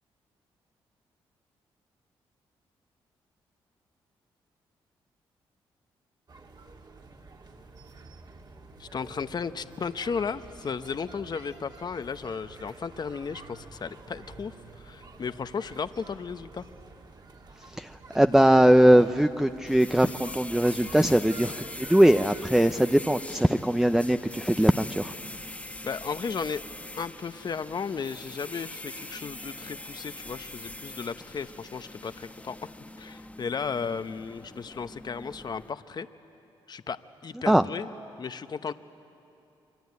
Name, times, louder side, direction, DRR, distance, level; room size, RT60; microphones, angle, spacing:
sound 1, 6.3-22.9, right 3 dB, 45° right, 2.7 m, -49 dB
voice 1, 8.8-16.6 25.8-26.6 27.0-32.6 33.0-36.1 36.7-37.9 38.2-38.7, left 5 dB, 45° left, 11 dB, 0.9 m, -34 dB
voice 2, 17.7-21.5 21.8-25.1 37.5-37.6, right 1 dB, 5° right, 8 dB, 0.7 m, -21 dB
sound 2, 19.7-35.7, left 1 dB, 15° left, 1.4 m, -43 dB
27.0 x 23.0 x 9.6 m, 2.8 s
cardioid pair, 65°, 10 cm